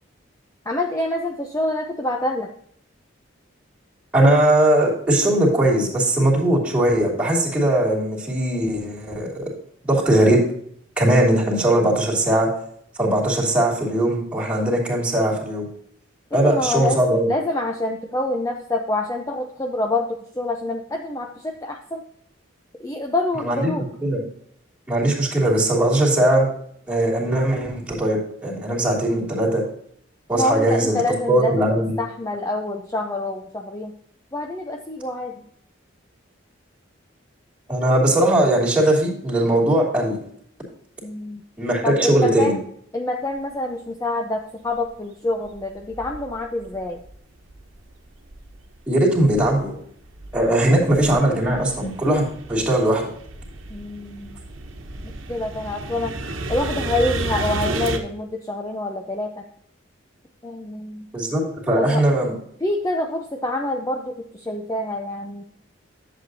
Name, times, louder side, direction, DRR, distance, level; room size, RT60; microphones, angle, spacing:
voice 1, 0.7-2.5 16.3-22.0 22.8-23.8 30.3-31.7 32.0-33.9 34.3-35.4 41.0-41.4 41.8-42.6 42.9-47.0 50.6-50.8 53.7-54.4 55.0-56.1 56.5-59.4 60.4-61.1 61.7-62.1 62.6-65.4, left 2 dB, 15° left, 2 dB, 0.6 m, -26 dB
voice 2, 4.1-9.4 9.8-10.4 11.0-12.5 13.0-15.6 16.3-17.3 23.4-24.2 24.9-26.5 26.9-29.6 30.3-31.0 31.3-31.9 37.7-40.2 41.6-42.6 48.9-49.7 50.3-53.0 61.1-62.3, right 1 dB, 5° right, -5 dB, 3.0 m, -19 dB
sound 1, 44.8-44.9 45.4-47.1 47.5-48.8 49.1-58.0, right 2 dB, 85° right, 1.2 m, -32 dB
11.0 x 7.8 x 2.7 m, 0.65 s
head